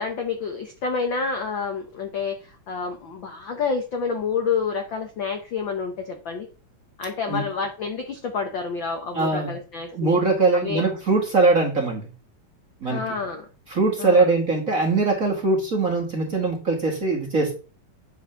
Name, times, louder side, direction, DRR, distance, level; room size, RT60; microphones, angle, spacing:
voice 1, 0.0-6.5 7.0-10.2 10.5-10.8 12.8-13.5 14.0-14.3, left 5 dB, 65° left, 5 dB, 1.2 m, -28 dB
voice 2, 9.1-9.5 9.9-12.0 12.8-13.0 13.7-17.5, right 3 dB, 30° right, 0 dB, 1.7 m, -21 dB
9.8 x 4.7 x 5.7 m, 0.35 s
omnidirectional pair, 3.6 m